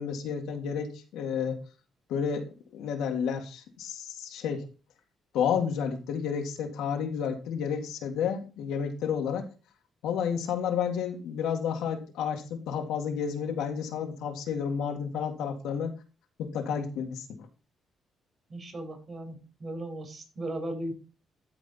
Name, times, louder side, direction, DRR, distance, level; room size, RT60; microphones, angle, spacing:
voice 1, 0.0-1.6 2.1-4.7 5.3-9.5 10.0-15.9 16.4-17.5, left 7 dB, 90° left, 3 dB, 1.8 m, -31 dB
voice 2, 18.5-20.9, right 1 dB, 45° right, 4 dB, 3.9 m, -37 dB
12.5 x 4.3 x 4.0 m, 0.33 s
cardioid pair, 90°, 0 cm